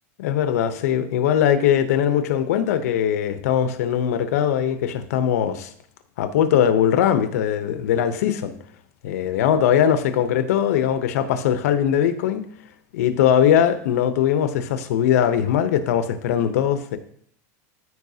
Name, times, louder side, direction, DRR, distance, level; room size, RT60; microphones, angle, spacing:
voice 1, 0.2-5.7 6.2-8.5 9.0-12.4 12.9-17.0, left 9 dB, 85° left, 10 dB, 0.8 m, -20 dB
14.0 x 4.8 x 2.8 m, 0.62 s
supercardioid pair, 155°, 8 cm